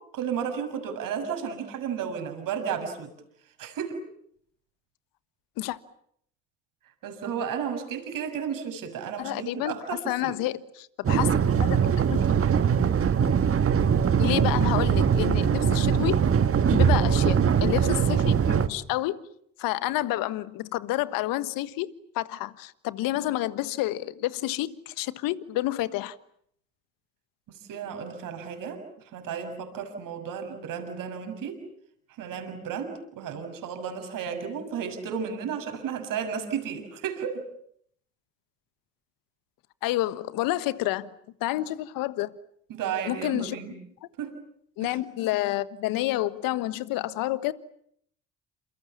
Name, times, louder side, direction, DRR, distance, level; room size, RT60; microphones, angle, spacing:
voice 1, 0.1-3.1 3.6-4.0 7.0-10.3 27.5-28.8 29.1-31.6 32.2-37.4 42.7-43.7 44.2-44.4 44.8-45.0, right 7 dB, 65° right, 6.6 m, -33 dB
voice 2, 9.2-9.7 10.0-12.3 14.2-16.2 16.7-19.2 19.6-26.2 39.8-41.1 41.4-42.3 43.0-43.6 44.8-47.5, left 16 dB, 70° left, 1.5 m, -29 dB
sound 1, 11.0-18.7, right 7 dB, 40° right, 1.6 m, -22 dB
28.5 x 27.0 x 7.2 m
hypercardioid pair, 60°, 36 cm